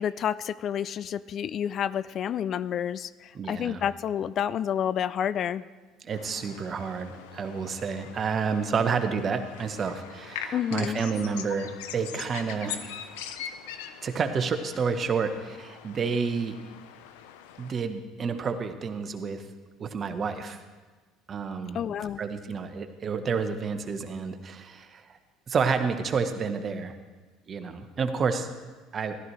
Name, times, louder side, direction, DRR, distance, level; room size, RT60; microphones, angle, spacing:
voice 1, 0.0-5.6 10.5-11.0 21.7-22.2, left 9 dB, 50° left, 17 dB, 0.3 m, -29 dB
voice 2, 3.3-3.8 6.0-13.4 14.0-16.6 17.6-19.4 19.8-20.6 21.3-21.8 22.2-25.2 25.5-26.9 27.5-28.5 28.9-29.2, right 5 dB, 40° right, 8 dB, 1.1 m, -30 dB
sound 1, 6.1-17.8, left 9 dB, 80° left, 0.7 m, -42 dB
15.0 x 12.5 x 3.3 m, 1.3 s
hypercardioid pair, 70°, 0 cm